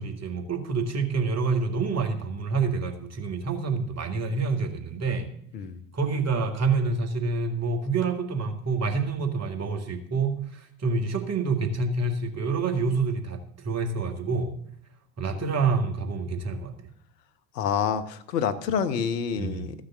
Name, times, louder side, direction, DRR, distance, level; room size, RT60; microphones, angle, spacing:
voice 1, 0.0-5.3 5.9-13.4 13.6-14.5 15.2-16.7 19.3-19.7, right 4 dB, 30° right, 6 dB, 2.2 m, -27 dB
voice 2, 17.5-19.7, left 7 dB, 75° left, 10 dB, 1.1 m, -27 dB
13.5 x 6.5 x 7.1 m, 0.66 s
figure-of-eight pair, 70°, 50 cm